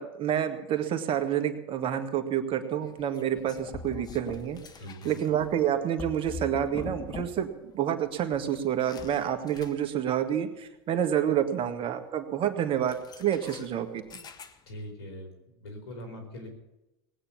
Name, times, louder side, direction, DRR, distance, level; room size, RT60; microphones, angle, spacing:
voice 1, 0.0-4.6 5.0-7.5 7.7-14.2, right 9 dB, 45° right, 7 dB, 2.0 m, -28 dB
sound 1, 2.8-7.6 7.9-10.2 12.8-14.9, left 4 dB, 30° left, 1.4 m, -44 dB
voice 2, 4.8-5.2 14.7-15.3 15.6-16.5, equal, 85° left, 4 dB, 4.6 m, -41 dB
19.0 x 9.1 x 7.1 m, 0.96 s
hypercardioid pair, 90°, 13 cm